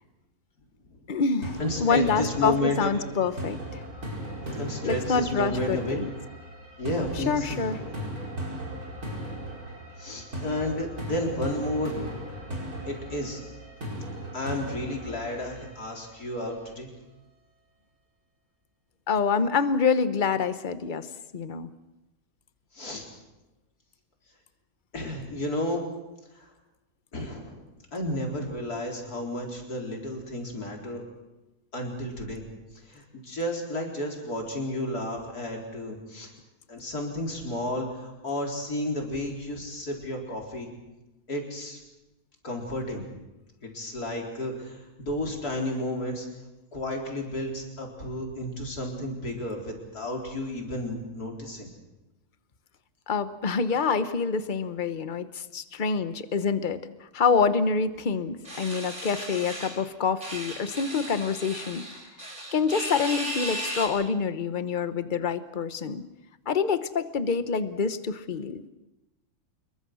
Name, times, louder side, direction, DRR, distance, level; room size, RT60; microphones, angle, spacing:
voice 1, 1.1-3.8 4.8-6.1 7.2-7.8 19.1-21.1 21.3-21.7 53.1-56.8 57.1-61.8 62.5-66.0 66.5-68.7, left 5 dB, 35° left, 11 dB, 1.1 m, -26 dB
sound 1, 1.4-16.4, equal, 70° right, 5.4 m, -37 dB
voice 2, 1.6-3.3 4.6-6.0 6.8-7.5 10.0-11.9 12.9-13.4 14.3-16.9 22.7-23.1 24.9-25.8 26.3-26.4 27.1-27.7 27.9-31.0 31.7-32.4 32.8-36.3 36.7-40.7 41.3-41.8 42.4-43.1 43.6-46.3 46.7-51.7, left 1 dB, 80° left, 0 dB, 4.7 m, -32 dB
sound 2, 58.4-59.8 60.2-63.9, equal, 25° right, 5.1 m, -36 dB
26.5 x 22.5 x 6.3 m, 1.0 s
omnidirectional pair, 1.6 m